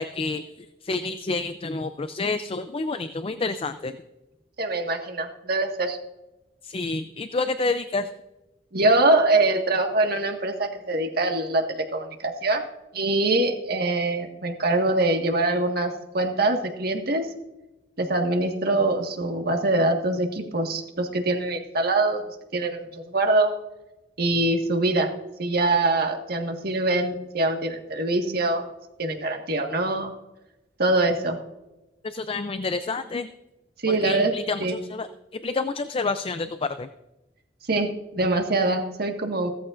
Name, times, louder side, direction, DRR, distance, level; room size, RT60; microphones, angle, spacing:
voice 1, 0.0-4.0 6.6-8.1 32.0-33.3 33.9-36.9, left 3 dB, 30° left, 10 dB, 0.5 m, -29 dB
voice 2, 4.6-6.0 8.7-12.6 12.9-17.3 18.0-22.2 22.5-23.5 24.2-25.1 25.4-28.7 29.0-30.1 30.8-31.4 33.8-34.3 34.6-34.8 37.7-39.5, right 2 dB, 60° right, 3 dB, 1.7 m, -24 dB
16.0 x 14.0 x 2.5 m, 1.0 s
head